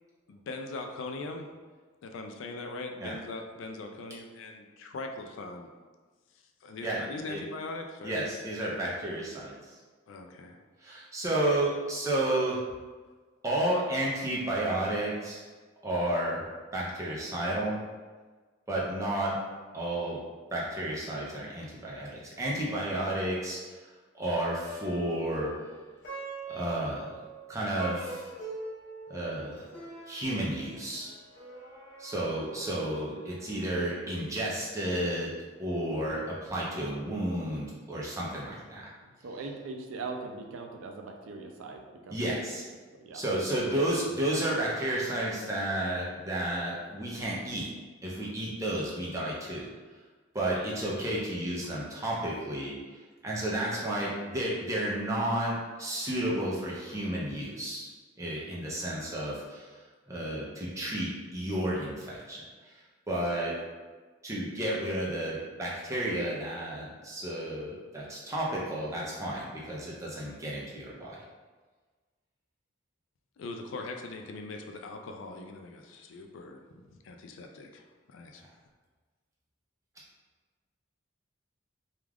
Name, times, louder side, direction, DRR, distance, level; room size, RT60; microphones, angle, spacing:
voice 1, 0.3-1.5 2.0-5.7 6.6-8.3 10.1-10.6 73.4-77.8 78.1-78.4, left 3 dB, 75° left, 4 dB, 0.3 m, -41 dB
voice 2, 8.0-9.8 10.8-12.6 13.4-15.5 15.8-16.5 16.7-17.8 18.7-19.4 19.7-20.2 20.5-23.8 24.1-25.5 26.5-27.1 27.5-28.3 29.1-29.6 30.1-31.1 32.0-35.3 35.6-38.9 42.1-42.6 43.1-47.7 48.0-49.7 50.3-52.8 53.2-57.9 58.2-63.6 64.2-71.2, right 1 dB, 15° right, -5 dB, 0.5 m, -32 dB
Plucked string instrument, 24.4-33.9, right 2 dB, 55° left, 0.8 m, -44 dB
voice 3, 39.0-42.3 42.9-43.2, right 3 dB, 80° right, 2 dB, 0.4 m, -41 dB
2.3 x 2.3 x 3.3 m, 1.4 s
head